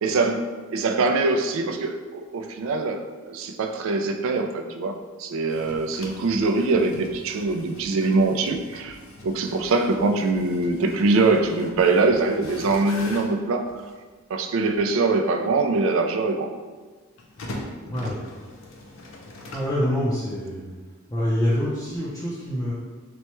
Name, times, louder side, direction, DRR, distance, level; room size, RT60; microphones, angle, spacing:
voice 1, 0.0-9.0 9.2-13.9 14.3-16.6, right 3 dB, 65° right, 6 dB, 0.3 m, -23 dB
sound 1, 5.5-14.0 14.7-14.8 17.2-19.8, left 1 dB, 65° left, 0.5 m, -42 dB
voice 2, 17.9-18.2 19.5-20.7 21.1-22.7, equal, 15° left, -9 dB, 0.5 m, -25 dB
4.2 x 2.2 x 3.0 m, 1.4 s
head